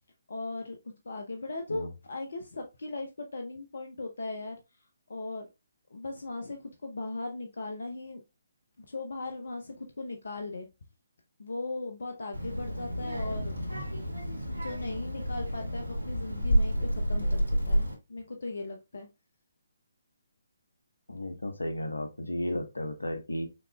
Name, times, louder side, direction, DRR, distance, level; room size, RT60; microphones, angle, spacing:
voice 1, 0.3-0.8 1.0-4.6 5.1-5.5 5.9-8.2 8.8-10.7 11.4-13.5 14.5-19.1, left 2 dB, 65° left, 0.8 m, -38 dB
Child speech kid speaking, 12.3-17.9, equal, 85° right, 1.7 m, -30 dB
voice 2, 21.1-23.5, left 1 dB, 85° left, 1.1 m, -34 dB
5.9 x 3.8 x 2.3 m
figure-of-eight pair, 140°, 0 cm